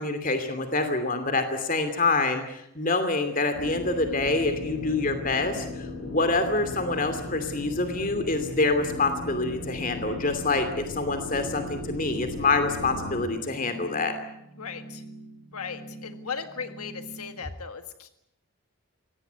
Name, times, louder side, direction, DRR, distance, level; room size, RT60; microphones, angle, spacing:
voice 1, 0.0-14.1, left 3 dB, 40° left, 7 dB, 2.7 m, -26 dB
sound 1, 3.5-13.2, left 1 dB, 55° left, 6.4 m, -37 dB
sound 2, 12.1-17.4, right 2 dB, 20° left, 3.8 m, -45 dB
voice 2, 14.6-15.0 15.5-18.1, left 6 dB, 85° left, 8 dB, 1.7 m, -37 dB
24.0 x 18.0 x 9.5 m, 0.80 s
head